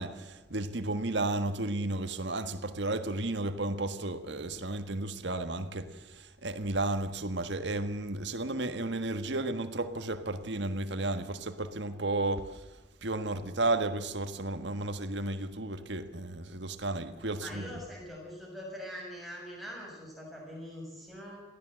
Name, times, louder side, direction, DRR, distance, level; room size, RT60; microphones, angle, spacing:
voice 1, 0.0-12.6 13.0-17.6, right 2 dB, 70° right, 1.5 m, -33 dB
voice 2, 17.4-21.4, equal, ahead, 7.0 m, -43 dB
22.5 x 15.5 x 7.9 m
head